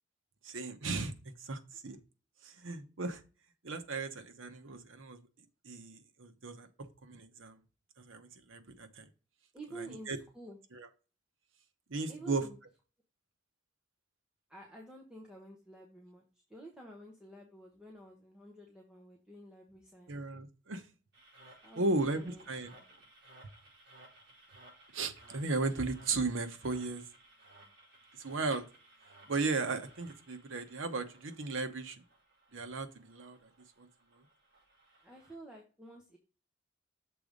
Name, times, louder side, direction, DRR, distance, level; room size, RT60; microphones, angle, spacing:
voice 1, 0.4-1.1 1.4-2.0 2.4-3.2 3.6-5.2 5.6-7.6 8.0-9.1 9.7-10.2 10.7-10.9 11.9-12.4 20.1-20.8 21.8-22.7 24.9-27.0 28.2-28.6 29.3-32.0 32.5-33.5 33.8-33.9, right 3 dB, 90° right, 8 dB, 0.9 m, -36 dB
voice 2, 9.5-10.6 12.1-12.6 14.5-16.2 16.5-20.2 21.6-22.8 35.0-36.2, right 1 dB, 5° right, -1 dB, 1.0 m, -50 dB
sound 1, 21.1-35.3, right 1 dB, 60° right, 4.3 m, -60 dB
6.8 x 3.9 x 5.1 m, 0.34 s
head